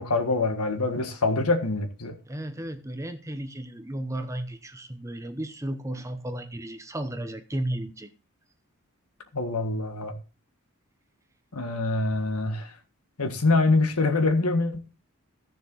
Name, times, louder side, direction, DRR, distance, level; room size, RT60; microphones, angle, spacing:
voice 1, 0.0-2.2 9.3-10.2 11.5-12.7 13.2-14.8, left 3 dB, 90° left, 1.6 m, -25 dB
voice 2, 2.3-8.1, right 1 dB, 15° right, 0.8 m, -34 dB
15.0 x 6.7 x 4.0 m
head